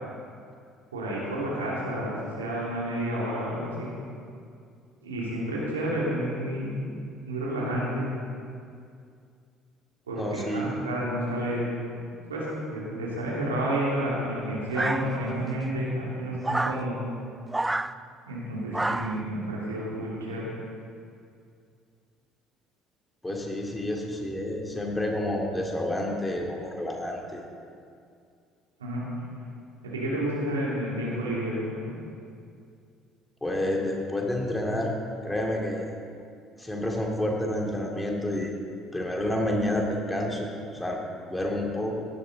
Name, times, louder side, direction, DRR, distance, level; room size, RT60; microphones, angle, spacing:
voice 1, 0.9-3.9 5.0-6.8 7.3-8.0 10.1-11.6 12.3-17.0 18.3-20.5 28.8-29.0 29.8-31.9, right 1 dB, 85° right, -6 dB, 3.0 m, -30 dB
voice 2, 10.2-10.7 23.2-27.4 33.4-34.9 35.2-35.9 36.6-38.5 38.9-40.5 40.8-41.0 41.3-42.1, left 1 dB, 15° left, 0 dB, 2.6 m, -29 dB
sound 1, 14.7-15.5 16.4-16.8 17.5-17.9 18.7-19.2, right 2 dB, 15° right, 0.4 m, -29 dB
16.5 x 11.0 x 4.1 m, 2.3 s
figure-of-eight pair, 55°, 0 cm